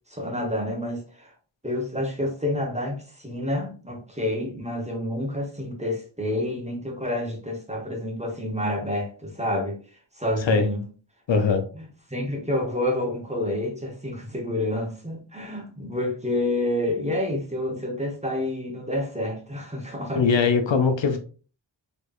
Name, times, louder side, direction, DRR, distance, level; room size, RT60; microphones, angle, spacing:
voice 1, 0.1-1.3 1.6-9.8 10.2-10.8 11.7-20.5, left 1 dB, 15° right, 0.9 m, -29 dB
voice 2, 11.3-11.6 20.2-21.2, left 5 dB, 70° left, 0.6 m, -21 dB
3.2 x 3.1 x 2.4 m
wide cardioid pair, 70°, 46 cm